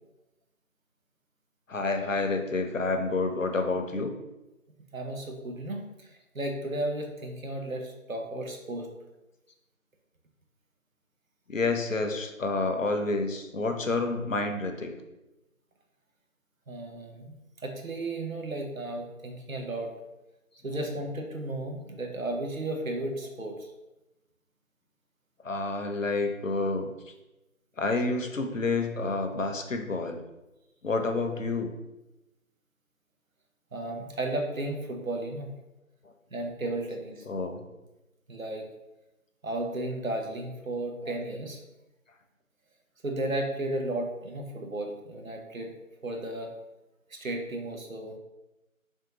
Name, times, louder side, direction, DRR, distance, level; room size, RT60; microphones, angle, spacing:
voice 1, 1.7-4.1 11.5-14.9 25.4-26.8 27.8-30.2 30.8-31.7 37.3-37.6 41.1-41.2, left 3 dB, 65° left, 5 dB, 0.5 m, -29 dB
voice 2, 4.9-6.1 6.3-8.9 16.7-19.9 20.6-23.7 33.7-35.5 36.3-37.2 38.3-38.6 39.4-41.6 43.0-45.7 46.0-46.5 47.1-48.1, right 1 dB, 70° right, 2 dB, 0.7 m, -34 dB
3.3 x 2.7 x 2.8 m, 0.98 s
figure-of-eight pair, 170°, 42 cm